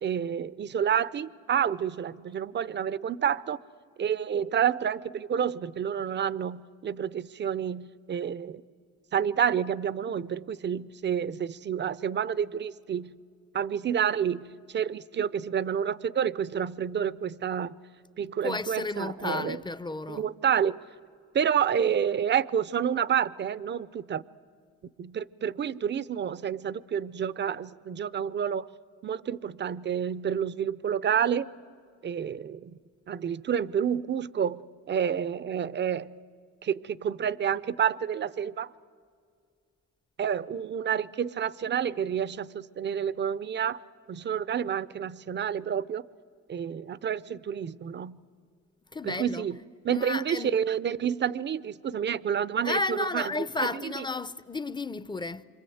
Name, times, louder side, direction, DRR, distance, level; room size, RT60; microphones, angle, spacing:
voice 1, 0.0-3.6 4.0-8.6 9.1-13.2 13.5-17.8 18.2-19.6 20.1-20.8 21.3-24.2 25.0-28.7 29.0-31.5 32.0-32.8 33.1-36.2 36.6-38.7 40.2-43.8 44.1-46.0 46.5-48.2 49.0-49.6 49.8-54.0, right 8 dB, 35° right, 0.6 m, -29 dB
voice 2, 18.4-20.3 48.9-49.4 49.9-50.5 52.6-55.4, left 3 dB, 15° left, 0.7 m, -32 dB
27.5 x 25.5 x 7.9 m
cardioid pair, 90°, 30 cm